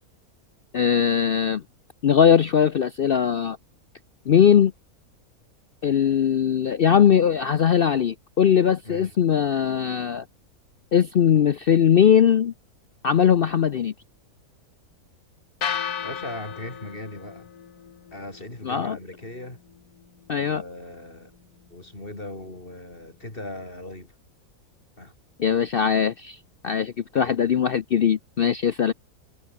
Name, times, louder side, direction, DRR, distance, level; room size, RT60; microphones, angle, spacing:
voice 1, 0.7-1.6 2.0-3.6 4.3-4.7 5.8-10.2 10.9-12.5 13.0-13.9 18.6-19.0 20.3-20.6 25.4-26.4 26.6-28.9, left 8 dB, 55° left, 0.6 m, -20 dB
sound 1, 15.6-23.7, left 8 dB, 80° left, 1.9 m, -38 dB
voice 2, 16.0-17.5 18.1-19.6 20.3-21.3 21.7-24.2 25.0-25.1 27.1-27.4, left 1 dB, 35° left, 5.0 m, -38 dB
omnidirectional pair, 1.6 m